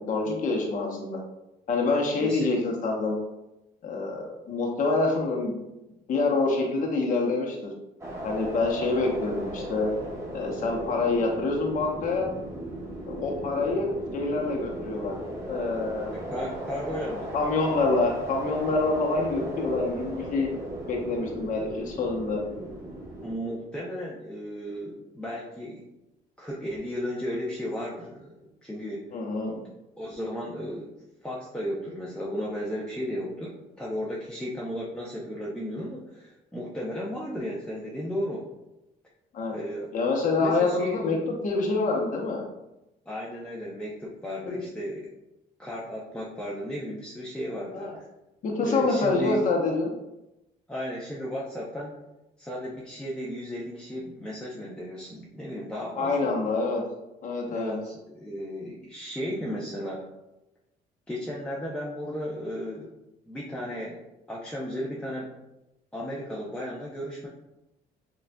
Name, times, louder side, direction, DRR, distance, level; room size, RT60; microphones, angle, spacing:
voice 1, 0.1-1.2 1.7-3.2 3.8-5.5 6.1-7.7 8.2-9.9 10.3-12.3 13.1-15.1 15.5-16.1 17.3-20.5 20.9-22.4 29.1-29.6 39.3-39.5 39.9-41.2 41.4-42.4 44.5-44.6 47.7-47.9 48.4-49.9 56.0-56.8 57.2-57.7, left 3 dB, 50° left, 0 dB, 0.9 m, -26 dB
voice 2, 2.2-2.6 16.1-17.3 23.2-25.8 26.4-29.1 30.0-30.9 31.2-38.5 39.5-39.9 40.4-41.0 43.1-45.1 45.6-48.0 48.6-49.4 50.7-52.0 52.4-56.3 57.5-60.1 61.1-62.9 63.3-64.0 64.3-65.3 65.9-67.3, equal, 5° left, -5 dB, 0.6 m, -34 dB
sound 1, 8.0-23.3, right 1 dB, 15° right, 1.0 m, -37 dB
6.6 x 2.4 x 2.2 m, 0.93 s
cardioid pair, 110°, 17 cm